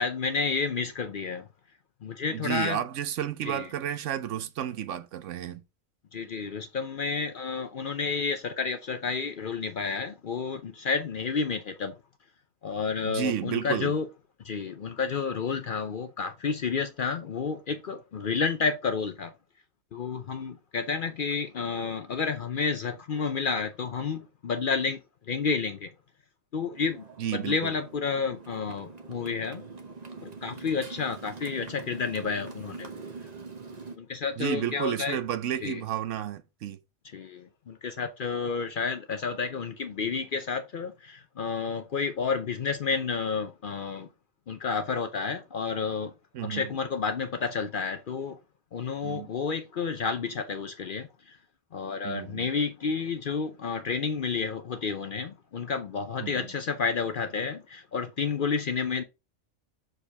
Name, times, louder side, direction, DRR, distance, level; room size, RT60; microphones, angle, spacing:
voice 1, 0.0-1.5 2.0-2.8 3.5-3.7 6.1-11.9 12.6-14.1 14.4-19.3 19.9-25.0 25.3-25.9 26.5-27.0 27.3-29.6 30.2-32.9 34.0-35.2 35.6-35.8 37.1-44.1 44.5-46.1 46.4-48.4 48.7-51.4 51.7-59.0, left 5 dB, 55° left, 0.6 m, -30 dB
voice 2, 2.3-5.6 13.0-13.9 27.2-27.7 34.4-36.8 46.3-46.7 49.0-49.3 52.0-52.5 56.2-56.5, right 10 dB, 75° right, 1.0 m, -32 dB
Motorcycle, 26.7-34.0, right 4 dB, 35° right, 1.0 m, -44 dB
6.4 x 4.9 x 3.4 m
omnidirectional pair, 1.3 m